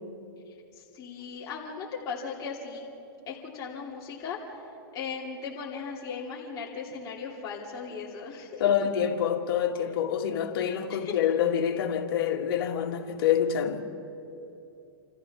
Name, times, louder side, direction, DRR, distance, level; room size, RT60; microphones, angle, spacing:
voice 1, 0.5-2.8 3.3-8.7 10.9-11.2, left 5 dB, 30° left, 2.9 m, -38 dB
voice 2, 8.6-13.9, left 8 dB, 65° left, 2.2 m, -26 dB
28.5 x 28.0 x 3.7 m
hypercardioid pair, 145°, 13 cm